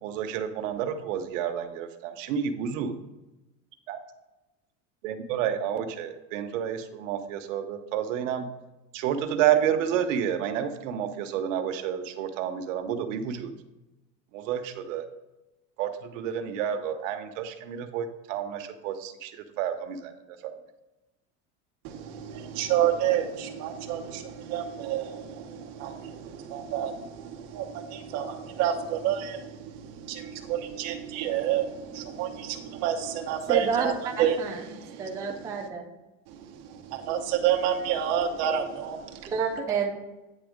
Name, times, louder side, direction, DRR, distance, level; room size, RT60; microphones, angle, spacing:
voice 1, 0.0-2.9 3.9-4.0 5.0-8.5 8.9-13.5 14.3-15.0 15.8-20.1 20.4-20.5, right 9 dB, 85° right, 8 dB, 0.9 m, -30 dB
voice 2, 21.8-33.9 34.2-35.7 36.3-39.3, right 10 dB, 45° right, 2 dB, 0.9 m, -29 dB
voice 3, 33.5-34.6 35.0-35.9 39.3-40.0, right 5 dB, 10° right, 1 dB, 0.4 m, -29 dB
9.1 x 3.5 x 5.0 m, 1.0 s
cardioid pair, 165°, 37 cm